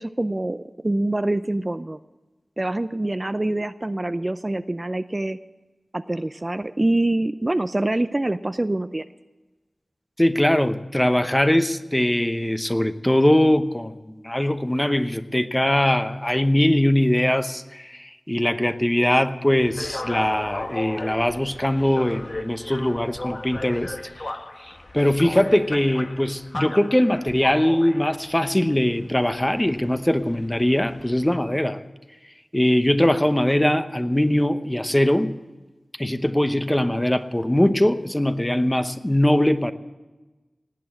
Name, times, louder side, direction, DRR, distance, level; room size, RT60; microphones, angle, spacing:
voice 1, 0.0-2.0 2.6-5.4 5.9-9.1, right 1 dB, 30° right, 12 dB, 0.5 m, -25 dB
voice 2, 10.2-24.3 24.9-31.8 32.5-35.3 36.0-39.7, left 1 dB, 15° left, 10 dB, 0.9 m, -21 dB
sound 1, 19.5-31.4, left 2 dB, 45° left, 1.1 m, -36 dB
18.5 x 8.5 x 7.7 m, 1.2 s
cardioid pair, 45°, 0 cm